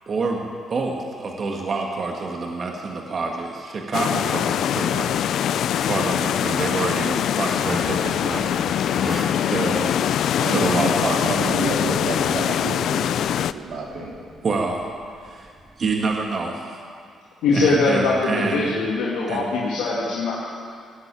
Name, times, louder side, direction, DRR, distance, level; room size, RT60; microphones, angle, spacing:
voice 1, 0.1-9.1 9.4-10.0 10.5-11.3 14.4-14.9 15.2-15.5 15.8-16.8 17.5-18.7 19.3-19.5, right 3 dB, 45° right, 1 dB, 1.7 m, -27 dB
sound 1, 3.9-13.5, left 10 dB, 70° left, 0.4 m, -23 dB
sound 2, 6.2-16.2, equal, 20° right, 3.5 m, -39 dB
voice 2, 10.4-10.9 11.2-14.2, right 3 dB, 70° right, -2 dB, 3.4 m, -29 dB
voice 3, 17.4-20.3, left 3 dB, 90° left, -6 dB, 2.4 m, -21 dB
18.0 x 8.1 x 9.2 m, 2.2 s
cardioid pair, 90°, 0 cm